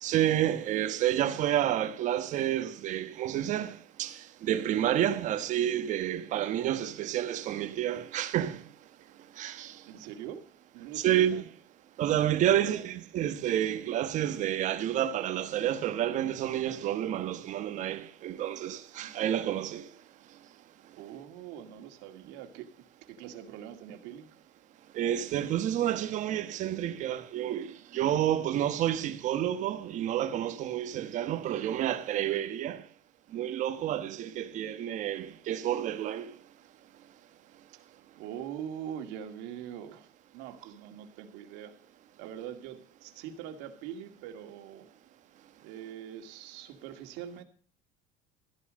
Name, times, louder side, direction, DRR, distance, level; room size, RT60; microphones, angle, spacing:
voice 1, 0.0-8.6 9.4-9.8 10.9-11.5 12.0-19.9 24.9-32.8 33.3-36.3, right 11 dB, 40° right, 1.3 m, -29 dB
voice 2, 9.9-10.5 10.7-11.4 12.5-12.8 19.0-19.5 20.9-24.3 38.2-41.7 42.2-44.9 45.6-47.4, right 9 dB, 65° right, 2.3 m, -43 dB
14.0 x 11.0 x 5.2 m
cardioid pair, 165°, 19 cm